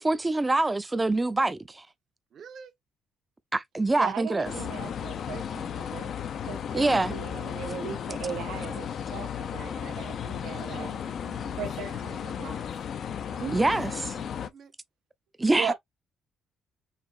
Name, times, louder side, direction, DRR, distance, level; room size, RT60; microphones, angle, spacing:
voice 1, 0.0-1.9 3.5-4.5 6.7-7.1 13.5-14.1 15.4-15.7, right 2 dB, 20° right, 0.6 m, -25 dB
voice 2, 2.3-2.7 8.0-8.2 8.6-8.9 10.7-12.8 13.3-14.7, right 7 dB, 65° right, 1.0 m, -50 dB
voice 3, 4.0-6.2 6.4-10.9 11.5-12.6 13.4-13.7 15.5-15.7, right 8 dB, 85° right, 0.8 m, -37 dB
sound 1, 4.4-14.5, left 8 dB, 60° left, 0.6 m, -35 dB
4.9 x 2.9 x 2.6 m
cardioid pair, 90°, 0 cm